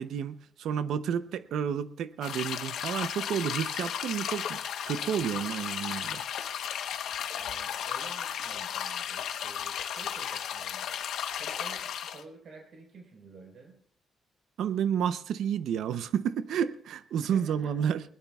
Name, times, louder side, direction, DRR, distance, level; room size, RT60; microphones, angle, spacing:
voice 1, 0.0-4.6 4.8-6.2 14.6-18.0, right 8 dB, 85° right, 0.7 m, -30 dB
sound 1, 2.2-12.2, left 9 dB, 85° left, 1.0 m, -34 dB
voice 2, 7.3-10.9 11.4-13.7 17.2-17.9, right 3 dB, 65° right, 4.3 m, -50 dB
21.0 x 19.0 x 2.4 m
cardioid pair, 135°, 0 cm